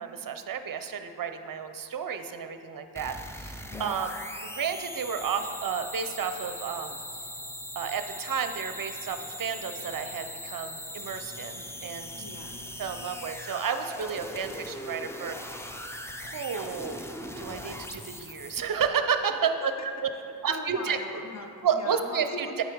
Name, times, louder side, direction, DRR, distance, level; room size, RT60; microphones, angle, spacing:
voice 1, 0.0-4.1 4.5-7.0 7.8-12.1 12.8-15.6 16.2-17.1 17.4-19.7 20.4-21.0 21.6-22.6, right 7 dB, 45° right, 8 dB, 0.6 m, -31 dB
sound 1, 3.0-18.9, left 1 dB, 5° left, 0.5 m, -40 dB
voice 2, 3.7-4.1 12.2-12.6 19.4-19.7 20.0-20.1 20.5-22.6, left 2 dB, 35° left, 3 dB, 0.9 m, -40 dB
8.4 x 4.8 x 4.6 m, 2.6 s
cardioid pair, 45°, 47 cm